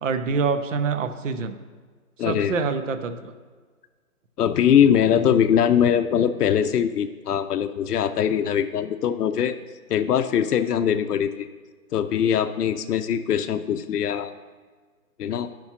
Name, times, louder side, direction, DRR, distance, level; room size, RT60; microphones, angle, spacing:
voice 1, 0.0-1.5 2.2-3.3, right 5 dB, 55° right, 10 dB, 0.5 m, -26 dB
voice 2, 2.2-2.5 4.4-9.5 9.9-11.5 11.9-14.3 15.2-15.5, left 9 dB, 90° left, 9 dB, 0.6 m, -22 dB
9.5 x 5.9 x 2.8 m, 1.5 s
hypercardioid pair, 175°, 45 cm